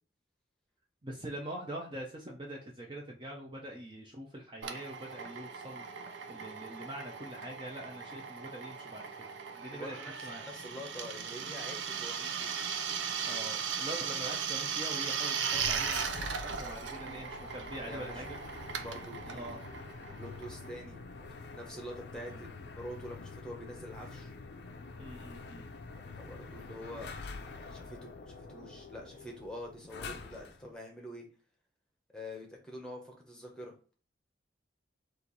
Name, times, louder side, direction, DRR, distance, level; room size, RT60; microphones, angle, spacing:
voice 1, 1.0-9.1 9.5-10.0 10.2-10.4 13.3-18.4 19.3-19.6 22.1-22.4 25.0-25.7, right 1 dB, 25° right, -1 dB, 0.6 m, -44 dB
Drill, 4.6-21.0, right 7 dB, 75° right, 0.6 m, -38 dB
voice 2, 9.7-10.1 10.4-12.5 16.8-17.2 17.9-18.2 18.8-19.6 20.1-21.0 21.5-24.3 26.0-27.1 27.5-31.3 32.1-33.9, equal, 5° left, 0 dB, 1.0 m, -46 dB
sound 1, 15.5-30.7, left 3 dB, 60° left, 0.5 m, -46 dB
4.4 x 2.6 x 4.0 m, 0.38 s
head